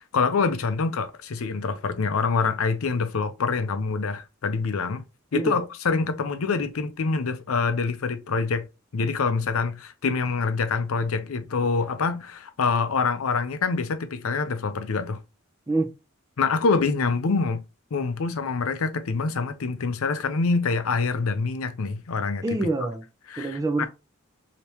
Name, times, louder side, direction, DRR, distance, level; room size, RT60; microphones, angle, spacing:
voice 1, 0.0-5.0 5.3-8.7 8.9-15.2 16.4-17.6 17.9-22.4 23.3-23.9, left 4 dB, 80° left, 0.6 m, -25 dB
voice 2, 22.4-23.0 23.4-23.9, right 2 dB, 15° right, 0.5 m, -26 dB
3.4 x 2.9 x 2.8 m
head